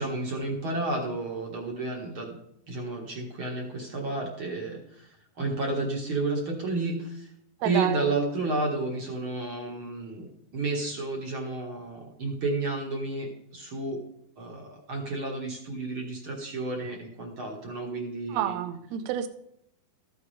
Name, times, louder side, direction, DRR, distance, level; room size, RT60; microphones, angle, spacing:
voice 1, 0.0-2.3 2.7-7.3 7.6-14.0 14.4-18.6, right 3 dB, 50° right, 0 dB, 1.7 m, -31 dB
voice 2, 7.6-8.0 18.3-19.3, right 10 dB, 75° right, 10 dB, 1.7 m, -29 dB
13.5 x 9.7 x 3.3 m, 0.76 s
omnidirectional pair, 4.2 m